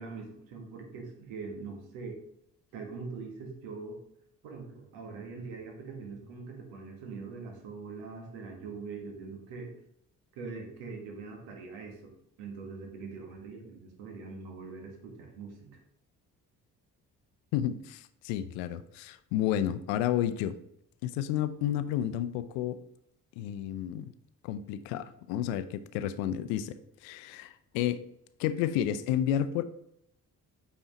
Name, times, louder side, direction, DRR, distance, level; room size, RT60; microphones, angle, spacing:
voice 1, 0.0-2.2 2.7-4.0 4.4-9.7 10.3-12.1 12.4-15.8, right 4 dB, 70° right, 2 dB, 1.6 m, -42 dB
voice 2, 17.5-20.5 21.0-22.8 23.4-24.1 24.4-26.7 27.0-28.0 28.4-29.6, left 11 dB, 65° left, 13 dB, 0.6 m, -31 dB
8.6 x 4.6 x 3.0 m, 0.76 s
figure-of-eight pair, 45°, 46 cm